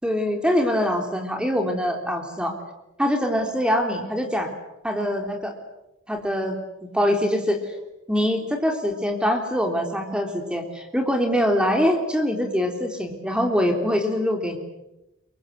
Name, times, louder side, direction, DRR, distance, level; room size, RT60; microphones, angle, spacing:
voice 1, 0.0-2.6 3.0-4.5 4.8-5.5 6.1-7.7 8.1-14.6, equal, 5° right, 3 dB, 3.5 m, -24 dB
27.5 x 23.5 x 8.2 m, 0.92 s
head